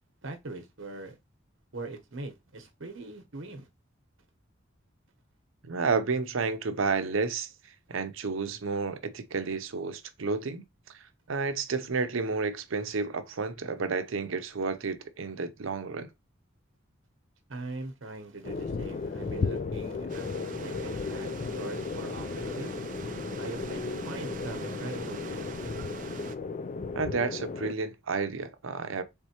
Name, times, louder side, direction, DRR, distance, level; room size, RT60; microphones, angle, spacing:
voice 1, 0.2-1.2 1.7-3.7 17.5-20.3 20.6-22.7 23.4-25.5, right 3 dB, 70° right, 1.0 m, -41 dB
voice 2, 5.6-7.5 7.9-10.6 10.9-11.0 11.3-16.1 27.0-29.0, right 4 dB, 90° right, 0.6 m, -31 dB
sound 1, 18.4-27.7, left 4 dB, 40° left, 0.3 m, -35 dB
sound 2, 20.1-26.4, right 5 dB, 40° right, 0.5 m, -43 dB
4.4 x 3.6 x 2.9 m
head